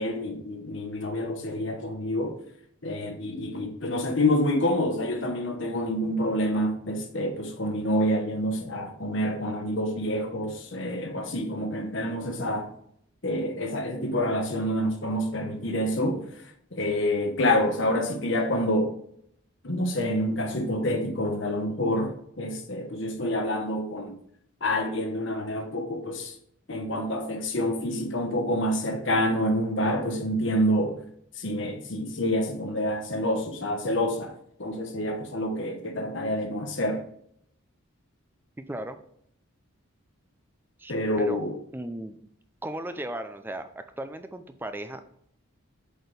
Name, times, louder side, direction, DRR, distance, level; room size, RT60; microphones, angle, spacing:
voice 1, 0.0-2.4 2.8-12.7 13.2-16.3 16.7-18.9 19.6-24.2 24.6-26.3 26.7-31.0 31.4-34.3 34.6-37.0 40.9-41.5, left 1 dB, 60° left, 1.2 m, -27 dB
voice 2, 40.8-41.4 41.7-42.2 42.6-43.7 44.0-45.0, right 1 dB, 10° right, 0.4 m, -36 dB
7.9 x 4.3 x 3.3 m
head